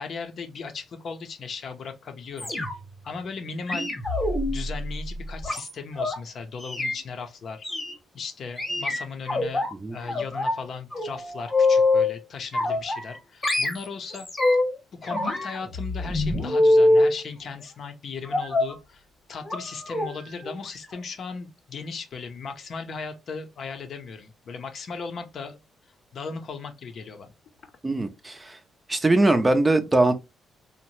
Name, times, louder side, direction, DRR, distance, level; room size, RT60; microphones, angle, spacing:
voice 1, 0.0-3.9 4.5-7.7 8.1-14.3 14.5-14.6 15.0-19.0 19.3-25.6 26.1-27.3, left 5 dB, 55° left, 0.6 m, -37 dB
sound 1, 2.4-3.0 3.7-6.2 6.6-7.0 7.6-7.9 8.6-9.7 10.1-10.6 10.9-12.1 12.5-13.2 13.4-14.7 15.0-17.1 18.3-18.8 19.4-19.6 19.9-20.1 20.4-20.6 20.9-21.0, left 2 dB, 25° left, 0.9 m, -24 dB
voice 2, 27.8-28.6 28.9-30.1, right 2 dB, 20° right, 0.4 m, -21 dB
2.7 x 2.1 x 3.0 m
cardioid pair, 90°, 0 cm